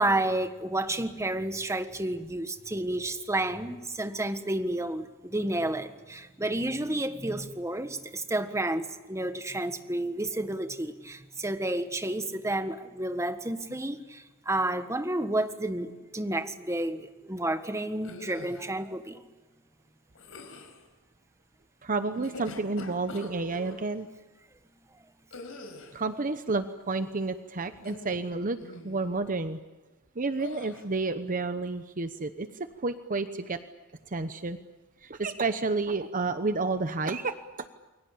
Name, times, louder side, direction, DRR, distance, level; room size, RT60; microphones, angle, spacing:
voice 1, 0.0-19.2, right 1 dB, 15° right, 8 dB, 1.5 m, -31 dB
sound 1, 18.0-18.7 20.1-20.8 22.0-23.8 25.3-26.0 27.8-28.3 28.6-29.0 30.4-30.8, left 2 dB, 75° left, 4.7 m, -44 dB
voice 2, 21.8-24.1 25.9-29.6 30.2-32.5 32.8-33.6 34.1-34.6 35.0-37.7, right 3 dB, 40° right, 10 dB, 0.9 m, -30 dB
29.0 x 23.0 x 8.6 m, 1.2 s
head